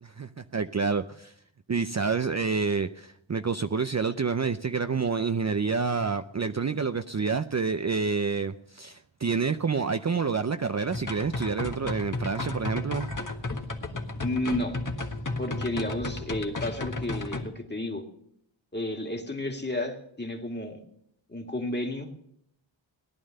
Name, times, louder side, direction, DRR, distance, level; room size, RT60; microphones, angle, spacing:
voice 1, 0.0-1.3 1.7-13.2, right 5 dB, 35° right, 9 dB, 0.6 m, -28 dB
sound 1, 10.9-17.4, left 2 dB, 40° left, 1.6 m, -33 dB
voice 2, 14.2-14.8 15.4-18.0 18.7-20.8 21.3-22.1, left 1 dB, 20° left, 3 dB, 2.2 m, -32 dB
18.0 x 11.0 x 6.5 m, 0.71 s
wide cardioid pair, 75°, 47 cm